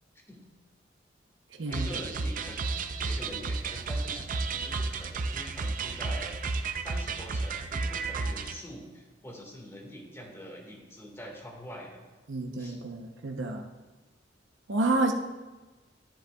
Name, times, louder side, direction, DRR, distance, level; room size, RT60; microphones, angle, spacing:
voice 1, 1.7-2.6 3.0-6.3 6.8-12.0 12.6-12.8, equal, 15° left, 0 dB, 1.7 m, -44 dB
sound 1, 1.7-8.6, right 3 dB, 45° right, 0.5 m, -32 dB
voice 2, 12.3-13.6 14.7-15.1, right 2 dB, 75° right, 3 dB, 0.8 m, -29 dB
10.5 x 10.0 x 2.3 m, 1.2 s
head